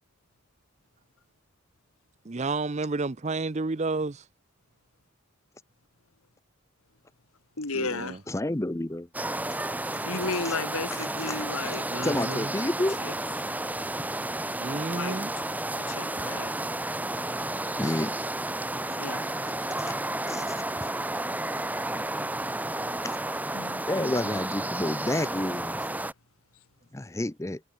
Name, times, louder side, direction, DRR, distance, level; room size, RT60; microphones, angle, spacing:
voice 1, 2.2-4.2 7.7-8.2 11.9-12.5 14.6-15.3, right 3 dB, 30° right, 0.6 m, -31 dB
voice 2, 7.6-8.2 10.1-12.4 13.0-13.1 14.9-15.2 15.8-16.5 19.0-19.3 23.5-24.4, left 3 dB, 75° left, 2.2 m, -34 dB
voice 3, 8.3-9.1 10.4-10.6 10.9-11.4 12.0-13.0 17.8-18.1 19.7-20.0 20.3-20.6 23.0-23.2 23.8-25.9 26.9-27.6, left 1 dB, 15° left, 0.5 m, -30 dB
sound 1, 9.1-26.1, right 1 dB, 5° right, 1.2 m, -32 dB
head